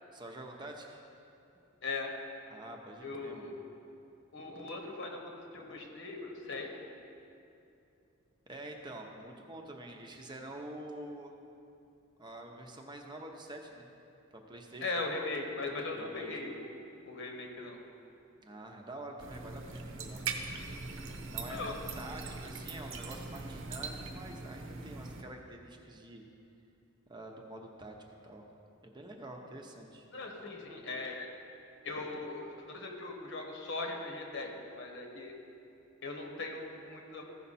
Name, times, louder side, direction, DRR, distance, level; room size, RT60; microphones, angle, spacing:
voice 1, 0.1-1.0 2.5-3.5 8.5-11.3 12.2-13.9 14.3-14.9 15.9-16.4 18.4-20.2 21.3-26.3 27.1-28.0 28.2-28.4 28.8-30.1, right 1 dB, 20° right, 2 dB, 0.8 m, -47 dB
voice 2, 3.0-3.5 4.3-5.2 5.5-6.7 14.8-16.7 17.0-17.8 21.5-21.7 30.1-31.3 31.8-35.3 36.0-37.3, left 3 dB, 65° left, 2 dB, 1.3 m, -39 dB
sound 1, 19.2-25.2, right 4 dB, 70° right, 0.8 m, -41 dB
15.0 x 5.7 x 4.2 m, 2.7 s
head